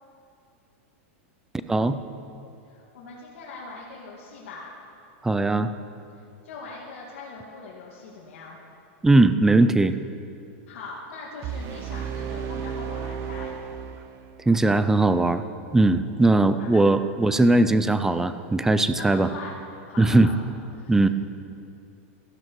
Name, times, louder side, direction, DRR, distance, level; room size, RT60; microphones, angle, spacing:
voice 1, 1.7-2.0 5.2-5.7 9.0-10.0 14.5-15.4 15.7-19.3 20.0-20.3 20.9-21.1, right 2 dB, 5° right, 11 dB, 0.5 m, -19 dB
voice 2, 2.7-4.7 6.4-8.6 10.7-13.5 16.6-16.9 19.0-19.6 19.9-20.5 20.7-21.1, left 3 dB, 70° left, -4 dB, 2.1 m, -41 dB
sound 1, 11.4-14.5, right 7 dB, 40° right, 0.8 m, -33 dB
14.5 x 12.0 x 4.6 m, 2.6 s
supercardioid pair, 140°, 7 cm